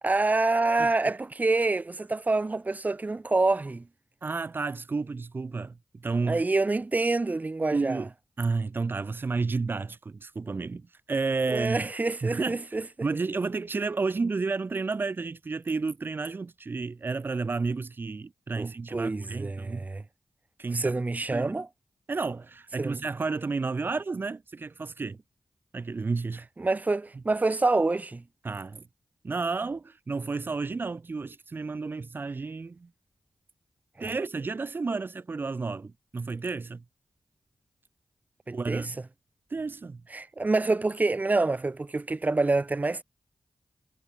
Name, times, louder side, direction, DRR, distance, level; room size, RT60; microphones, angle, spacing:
voice 1, 0.0-3.8 6.2-8.0 11.5-12.8 18.6-20.0 20.7-21.7 22.8-23.0 26.6-28.2 38.5-38.9 40.1-43.0, right 3 dB, 40° right, 5.8 m, -27 dB
voice 2, 4.2-5.8 6.0-6.4 7.7-8.1 8.4-11.9 12.2-19.9 20.6-21.0 21.3-21.5 22.1-25.2 25.7-26.5 28.4-28.8 29.2-32.9 34.0-36.8 38.5-39.0 39.5-40.0, right 4 dB, 55° right, 4.9 m, -31 dB
cardioid pair, 55°, 4 cm